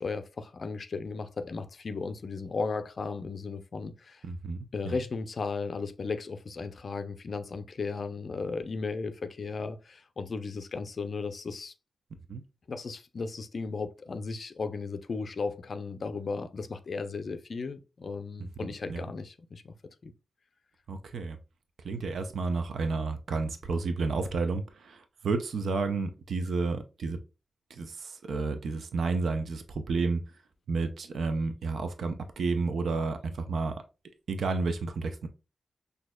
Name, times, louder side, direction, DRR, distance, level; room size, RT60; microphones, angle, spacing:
voice 1, 0.0-4.2 4.7-11.7 12.7-19.7 20.0-20.1, left 4 dB, 50° left, 0.4 m, -35 dB
voice 2, 4.2-4.6 4.8-5.0 12.3-12.4 18.9-19.0 20.9-21.4 21.8-27.2 27.7-30.2 30.7-33.7 34.3-35.3, right 4 dB, 75° right, 0.5 m, -31 dB
6.1 x 2.7 x 2.2 m
wide cardioid pair, 140°, 0 cm